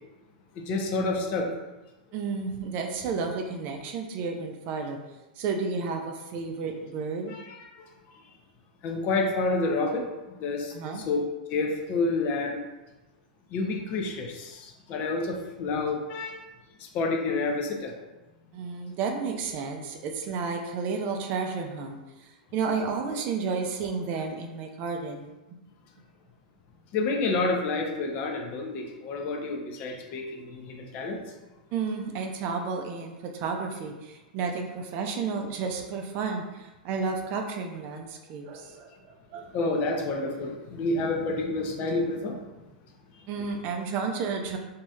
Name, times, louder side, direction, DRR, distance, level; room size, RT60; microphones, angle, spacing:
voice 1, 0.6-1.5 7.3-7.7 8.8-12.6 13.5-16.4 16.8-17.9 26.9-31.2 38.6-38.7 39.5-42.4 43.4-43.5, left 3 dB, 40° left, 2 dB, 0.6 m, -29 dB
voice 2, 2.1-5.0 5.4-7.3 10.7-11.0 18.5-25.6 31.7-39.7 43.3-44.6, right 5 dB, 45° right, 3 dB, 0.4 m, -32 dB
3.0 x 2.7 x 2.3 m, 1.0 s
hypercardioid pair, 105°, 5 cm